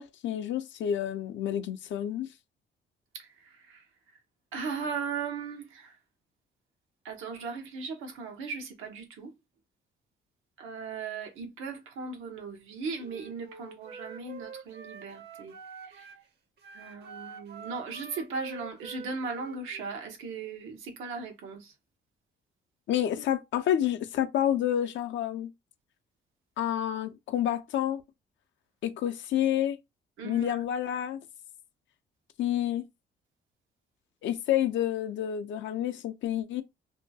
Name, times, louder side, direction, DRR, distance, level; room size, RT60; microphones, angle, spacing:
voice 1, 0.0-2.3 22.9-25.5 26.6-28.0 28.8-29.8 30.2-31.2 32.4-32.9 34.2-36.6, left 11 dB, 70° left, 0.5 m, -29 dB
voice 2, 3.1-3.8 4.5-6.0 7.0-9.3 10.6-15.6 15.8-16.1 16.7-21.7 30.2-30.6, right 4 dB, 90° right, 0.8 m, -38 dB
Wind instrument woodwind instrument, 13.0-16.2 16.6-20.0, right 5 dB, 60° right, 0.7 m, -46 dB
2.6 x 2.2 x 2.7 m
cardioid pair, 90°, 20 cm